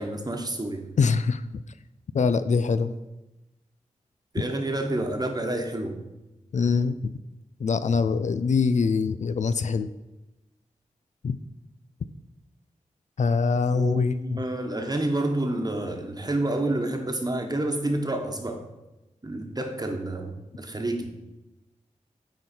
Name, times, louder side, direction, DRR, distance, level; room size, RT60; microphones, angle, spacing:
voice 1, 0.0-0.9 4.3-6.0 13.7-18.6 19.2-21.1, right 1 dB, 30° right, 4 dB, 1.2 m, -29 dB
voice 2, 1.0-1.4 2.1-2.9 6.5-6.9 7.6-9.9 11.2-11.4 13.2-14.4, left 5 dB, 65° left, 12 dB, 0.4 m, -23 dB
9.2 x 4.0 x 4.4 m, 1.0 s
cardioid pair, 45°, 13 cm